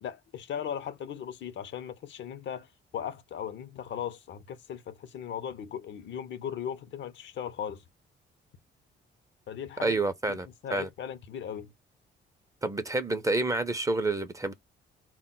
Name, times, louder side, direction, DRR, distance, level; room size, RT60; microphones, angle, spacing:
voice 1, 0.0-7.8 9.5-10.0 10.3-11.7, left 8 dB, 65° left, 0.5 m, -38 dB
voice 2, 9.8-10.9 12.6-14.5, right 2 dB, 15° right, 0.4 m, -28 dB
2.2 x 2.0 x 3.7 m
cardioid pair, 90°, 20 cm